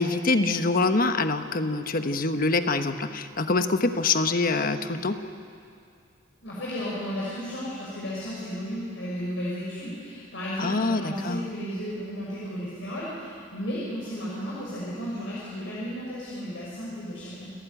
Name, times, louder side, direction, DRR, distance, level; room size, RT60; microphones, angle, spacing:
voice 1, 0.0-5.2 10.6-11.4, left 3 dB, 50° left, 9 dB, 1.2 m, -25 dB
voice 2, 6.4-17.5, equal, 75° left, -7 dB, 6.1 m, -34 dB
28.5 x 17.0 x 9.2 m, 2.4 s
head